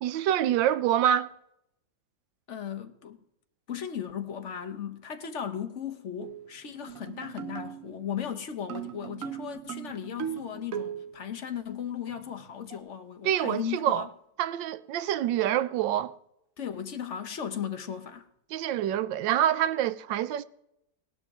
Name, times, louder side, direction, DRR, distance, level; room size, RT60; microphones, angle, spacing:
voice 1, 0.0-1.3 13.2-14.1 14.4-16.1 18.5-20.4, right 11 dB, 90° right, 1.3 m, -26 dB
voice 2, 2.5-3.2 3.7-14.1 16.6-18.3, left 8 dB, 45° left, 1.1 m, -36 dB
sound 1, 6.2-6.5 6.9-8.0 8.7-11.2 12.1-12.8, right 9 dB, 55° right, 1.1 m, -38 dB
17.5 x 12.0 x 3.6 m
omnidirectional pair, 2.0 m